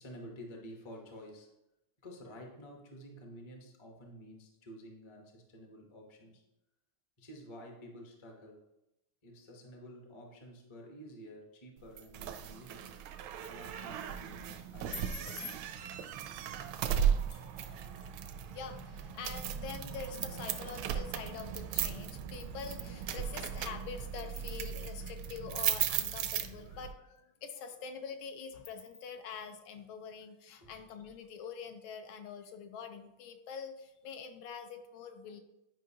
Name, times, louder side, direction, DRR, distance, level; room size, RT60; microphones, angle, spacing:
voice 1, 0.0-1.5 2.0-6.4 7.2-8.6 9.2-13.0 13.5-15.5 30.6-30.7, equal, 30° left, 1 dB, 0.5 m, -51 dB
sound 1, 12.0-26.9, right 9 dB, 80° right, 1.3 m, -36 dB
sound 2, 13.4-14.0 14.9-15.6 17.3-18.1 19.6-19.7 20.3-20.7 21.4-21.5 22.4-22.7 24.0-24.7 25.1-25.2 26.0-26.7 27.2-27.3 27.6-27.7 28.7-29.0, left 6 dB, 55° left, 1.3 m, -50 dB
voice 2, 18.3-35.4, left 6 dB, 75° left, 7 dB, 1.4 m, -45 dB
9.0 x 5.3 x 2.8 m, 0.90 s
omnidirectional pair, 2.3 m